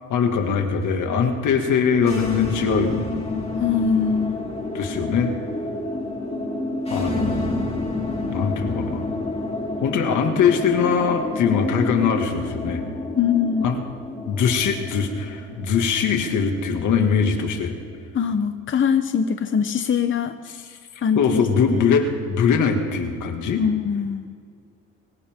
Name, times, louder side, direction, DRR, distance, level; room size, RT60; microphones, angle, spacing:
voice 1, 0.1-3.3 4.7-5.3 6.9-7.7 8.3-9.0 9.8-12.8 13.6-13.8 14.3-17.8 21.2-23.6, left 6 dB, 80° left, 4 dB, 2.3 m, -22 dB
sound 1, 2.0-18.0, left 2 dB, 20° left, 3.5 m, -29 dB
voice 2, 3.6-4.4 13.1-13.7 18.1-20.3 21.0-21.5 21.7-21.8 23.6-24.4, left 7 dB, 40° left, 8 dB, 0.9 m, -22 dB
24.5 x 15.5 x 3.8 m, 2.2 s
cardioid pair, 90°, 30 cm